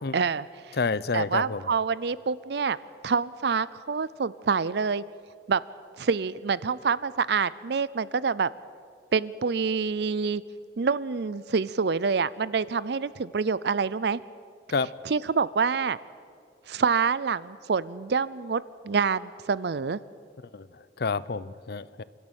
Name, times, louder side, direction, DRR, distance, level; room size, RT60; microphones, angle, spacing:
voice 1, 0.1-0.8 1.1-2.8 3.0-5.0 5.5-5.6 6.0-8.5 9.1-10.4 10.8-14.2 15.1-16.0 16.7-20.0, right 5 dB, 65° right, 19 dB, 0.5 m, -26 dB
voice 2, 0.8-1.6 14.7-14.9 20.5-20.7 21.0-22.0, left 4 dB, 65° left, 18 dB, 0.6 m, -28 dB
29.0 x 12.5 x 9.0 m, 2.3 s
head